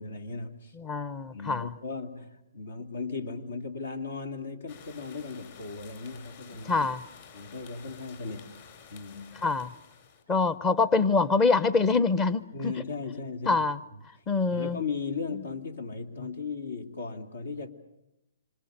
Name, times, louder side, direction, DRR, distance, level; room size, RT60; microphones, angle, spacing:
voice 1, 0.0-0.7 1.3-6.9 7.3-8.5 8.9-9.3 12.5-13.6 13.9-14.0 14.5-17.7, left 4 dB, 75° left, 2.8 m, -37 dB
voice 2, 0.8-1.7 6.7-7.0 9.4-9.7 10.3-12.7 13.5-13.8 14.3-14.8, left 4 dB, 20° left, 0.9 m, -25 dB
sound 1, 4.7-10.2, left 6 dB, 50° left, 5.2 m, -51 dB
27.0 x 26.0 x 6.7 m
hypercardioid pair, 140°, 0 cm